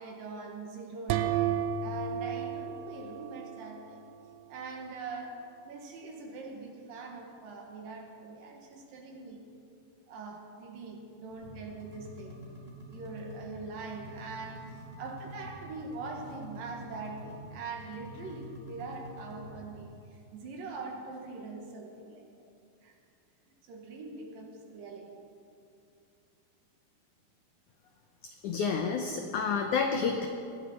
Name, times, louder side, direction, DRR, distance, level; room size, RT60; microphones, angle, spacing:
voice 1, 0.0-4.0 4.5-5.4 5.6-9.5 10.1-12.4 12.9-22.2 22.8-22.9 23.6-25.1, right 3 dB, 65° right, 1 dB, 3.0 m, -43 dB
sound 1, 1.1-3.9, right 9 dB, 90° right, 1.9 m, -32 dB
sound 2, 11.3-19.8, equal, 15° right, 3.7 m, -47 dB
voice 2, 28.4-30.3, left 5 dB, 80° left, 3 dB, 1.7 m, -29 dB
21.5 x 14.5 x 4.3 m, 2.5 s
omnidirectional pair, 4.7 m